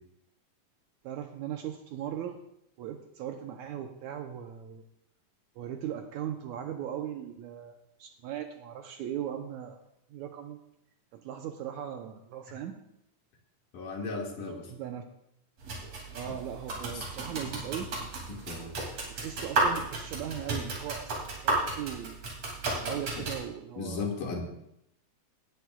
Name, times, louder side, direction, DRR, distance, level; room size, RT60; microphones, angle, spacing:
voice 1, 1.0-2.4 2.8-4.8 5.6-9.8 10.1-10.6 11.1-12.8 14.7-15.0 16.1-17.9 19.1-22.2 22.8-24.1, right 10 dB, 75° right, 5 dB, 1.9 m, -38 dB
voice 2, 13.7-14.7 16.9-17.0 18.3-18.7 23.2-23.3 23.8-24.5, left 4 dB, 70° left, 0 dB, 3.3 m, -35 dB
sound 1, 15.6-23.4, right 2 dB, 50° right, 3.5 m, -33 dB
17.5 x 12.5 x 2.3 m, 0.77 s
omnidirectional pair, 3.8 m